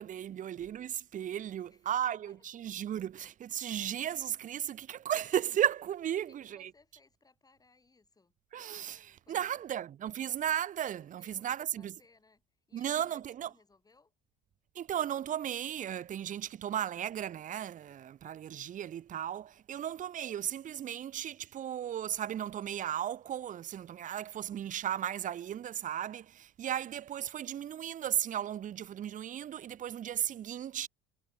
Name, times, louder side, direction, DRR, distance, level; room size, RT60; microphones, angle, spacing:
voice 1, 0.0-6.7 8.5-11.9 12.7-13.5 14.7-30.9, right 10 dB, 40° right, 0.9 m, -35 dB
voice 2, 1.5-2.5 6.1-8.3 9.2-9.8 11.0-14.1 26.8-27.1, left 3 dB, 20° left, 5.9 m, -66 dB
supercardioid pair, 100°, 21 cm